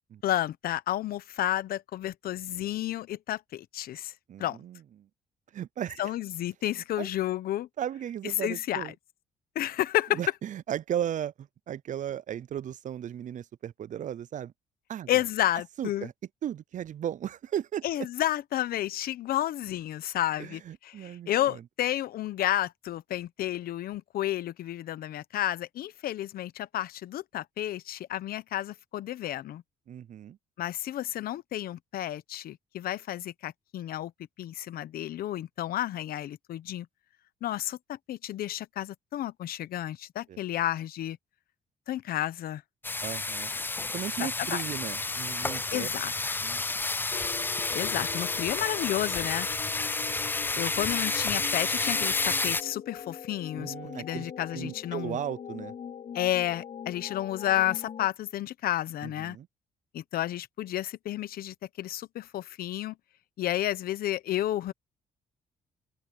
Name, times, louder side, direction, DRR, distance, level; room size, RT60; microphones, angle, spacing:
voice 1, 0.2-4.1 4.4-4.6 6.0-7.7 8.4-8.9 9.5-10.2 15.1-16.1 17.8-29.6 30.6-34.1 34.4-36.9 37.4-41.2 41.9-42.6 44.2-44.6 45.7-46.1 47.7-49.5 50.5-55.2 56.1-59.4 59.9-62.9 63.4-64.7, left 13 dB, 70° left, 1.0 m, -31 dB
voice 2, 4.3-4.8 5.5-6.1 7.0-7.1 7.8-8.9 10.1-14.5 14.9-15.2 15.8-16.1 16.4-17.8 20.4-21.6 29.9-30.4 40.3-40.4 43.0-43.5 43.9-45.9 46.4-46.6 50.6-50.7 53.6-55.7 59.0-59.5, right 10 dB, 55° right, 0.6 m, -36 dB
sound 1, 42.8-52.6, left 3 dB, 15° left, 0.3 m, -30 dB
sound 2, 47.1-58.1, left 8 dB, 45° left, 0.7 m, -42 dB
open air
supercardioid pair, 75°, 16 cm